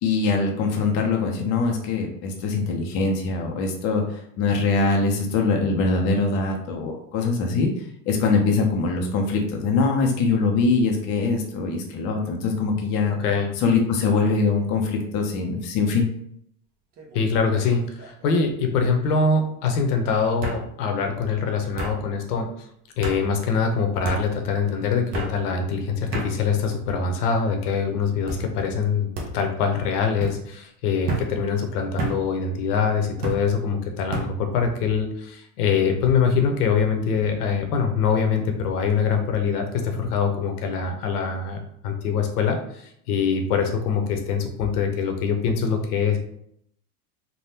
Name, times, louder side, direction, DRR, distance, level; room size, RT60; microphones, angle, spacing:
voice 1, 0.0-13.2 13.6-16.1, left 4 dB, 35° left, 2 dB, 0.5 m, -23 dB
voice 2, 13.2-13.5 17.1-22.5 22.9-41.6 41.8-46.2, left 5 dB, 70° left, 4 dB, 0.8 m, -24 dB
sound 1, 17.0-17.3 17.7-18.3 19.3-19.4 20.4-20.6 21.8-22.0 23.0-23.2 24.0-24.2 25.1-25.3 26.1-26.3 27.1-27.5 28.3-28.5 29.1-29.3 30.2-30.4 31.1-31.3 32.0-32.2 33.2-33.4 34.1-34.3, right 2 dB, 25° right, 0.3 m, -30 dB
3.4 x 2.2 x 2.7 m, 0.71 s
supercardioid pair, 130°, 47 cm